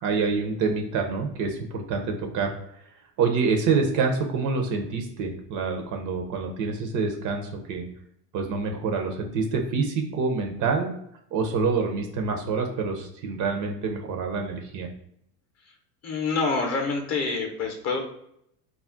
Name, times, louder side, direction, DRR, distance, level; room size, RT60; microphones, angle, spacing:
voice 1, 0.0-2.5 3.2-7.9 8.3-10.9 11.3-14.9, right 4 dB, 40° right, 4 dB, 0.5 m, -26 dB
voice 2, 16.0-18.0, left 4 dB, 35° left, 3 dB, 0.7 m, -26 dB
2.3 x 2.0 x 3.7 m, 0.75 s
supercardioid pair, 105°, 48 cm